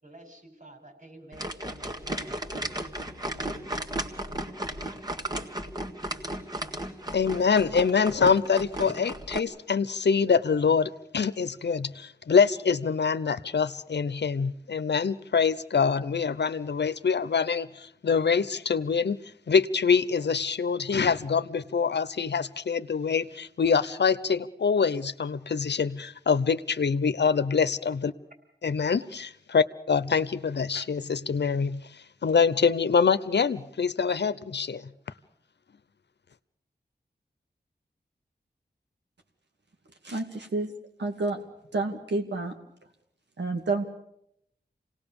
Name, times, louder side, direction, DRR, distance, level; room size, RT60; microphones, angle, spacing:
voice 1, 0.0-2.4 28.3-28.4, right 2 dB, 50° right, 5 dB, 5.4 m, -50 dB
sound 1, 1.3-9.4, right 1 dB, 20° right, 1.8 m, -35 dB
voice 2, 7.1-19.2 19.5-28.1 28.6-34.9, left 5 dB, 80° left, 14 dB, 0.9 m, -25 dB
voice 3, 40.0-40.7 41.0-41.4 41.7-42.5 43.4-43.8, right 3 dB, 90° right, 3 dB, 2.3 m, -29 dB
27.5 x 18.5 x 7.1 m, 0.74 s
wide cardioid pair, 95°, 18 cm